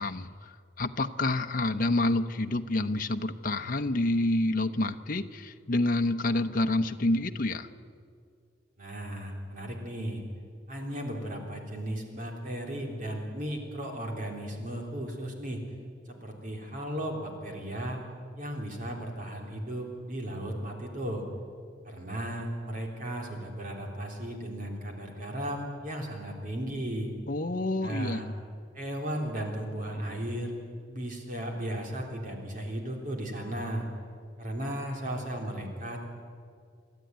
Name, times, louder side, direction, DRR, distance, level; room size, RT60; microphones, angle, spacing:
voice 1, 0.0-7.7 27.3-28.3, left 2 dB, 50° left, 7 dB, 0.9 m, -28 dB
voice 2, 8.8-10.2 10.7-15.6 16.1-18.0 18.4-21.3 21.8-27.1 27.8-28.3 28.7-30.5 30.9-33.9 34.4-36.0, right 1 dB, 45° right, 1 dB, 3.5 m, -35 dB
30.0 x 13.0 x 9.4 m, 2.2 s
head